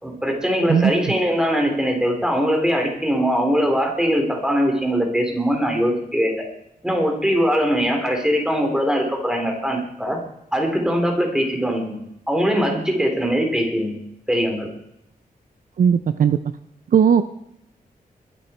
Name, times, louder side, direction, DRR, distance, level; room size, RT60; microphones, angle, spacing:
voice 1, 0.0-6.4 6.8-10.2 10.5-12.0 12.3-13.9 14.3-14.7, equal, 5° right, 2 dB, 3.8 m, -21 dB
voice 2, 15.8-16.4 16.9-17.2, right 7 dB, 65° right, 12 dB, 0.6 m, -16 dB
21.5 x 11.0 x 4.5 m, 0.79 s
wide cardioid pair, 155°, 15 cm